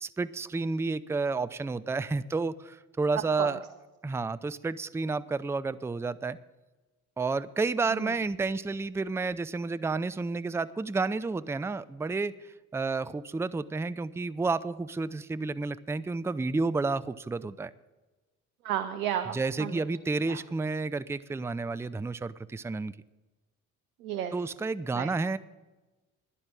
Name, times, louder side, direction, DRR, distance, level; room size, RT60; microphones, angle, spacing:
voice 1, 0.0-3.6 4.0-6.4 7.2-12.3 12.7-17.7 19.3-22.9 24.3-25.4, right 3 dB, 5° right, 15 dB, 0.5 m, -31 dB
voice 2, 18.6-19.8 20.2-20.4 24.0-24.3 24.9-25.1, right 10 dB, 85° right, 9 dB, 0.7 m, -33 dB
10.5 x 8.3 x 8.7 m, 1.1 s
figure-of-eight pair, 45°, 43 cm